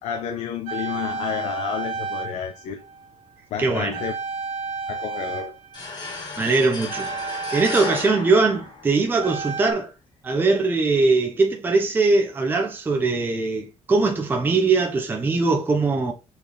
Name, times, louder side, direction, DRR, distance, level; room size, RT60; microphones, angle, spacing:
voice 1, 0.0-2.8 3.5-4.1 4.9-5.5, left 8 dB, 70° left, 1.0 m, -30 dB
sound 1, 0.7-3.6 3.9-9.7, right 4 dB, 90° right, 1.7 m, -32 dB
voice 2, 3.6-4.0 6.4-7.1 7.5-9.9 10.2-16.1, right 3 dB, 15° right, 0.9 m, -21 dB
sound 2, 5.7-9.3, left 4 dB, 35° left, 2.1 m, -34 dB
6.1 x 4.4 x 3.6 m
cardioid pair, 180°, 12 cm